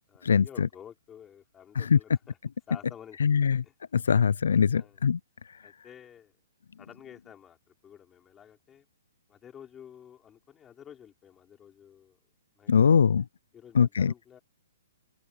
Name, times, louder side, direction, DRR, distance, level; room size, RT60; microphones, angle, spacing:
voice 1, 0.1-2.4 2.7-3.2 3.6-3.7 4.7-5.0 5.6-6.3 6.8-8.9 9.3-12.2 12.6-12.7 13.5-14.4, left 9 dB, 15° left, 5.1 m, -51 dB
voice 2, 3.2-3.6 3.9-5.2 12.7-13.2 13.8-14.1, left 6 dB, 80° left, 0.4 m, -21 dB
open air
hypercardioid pair, 150°, 0 cm